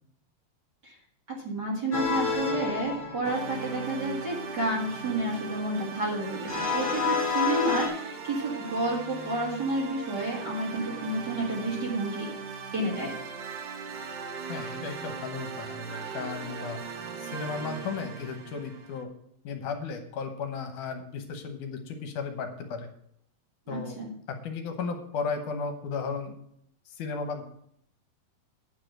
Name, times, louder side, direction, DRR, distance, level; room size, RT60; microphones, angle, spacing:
voice 1, 1.4-12.3 12.7-13.1 23.7-24.1, right 1 dB, 40° right, -3 dB, 1.8 m, -30 dB
sound 1, 1.9-3.9 6.5-7.9, left 5 dB, 30° left, 1.6 m, -29 dB
sound 2, 3.2-19.0, right 5 dB, 65° right, 1.6 m, -38 dB
voice 2, 14.5-16.8 17.2-19.1 19.4-22.9 23.7-24.0 24.3-26.3 26.9-27.4, left 5 dB, 70° left, 5 dB, 2.2 m, -35 dB
8.9 x 4.9 x 7.6 m, 0.69 s
omnidirectional pair, 4.1 m